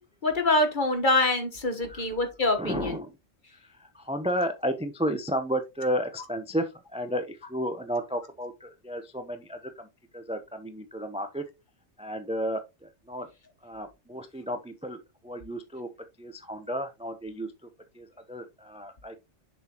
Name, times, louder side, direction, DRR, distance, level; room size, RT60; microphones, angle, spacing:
voice 1, 0.2-3.0, left 2 dB, 40° left, 1.4 m, -25 dB
voice 2, 2.6-3.1 3.5-9.9 10.1-11.4 12.0-13.3 13.6-15.9 16.2-17.5 17.9-19.2, equal, 5° right, 0.5 m, -33 dB
7.1 x 6.0 x 2.9 m
omnidirectional pair, 1.3 m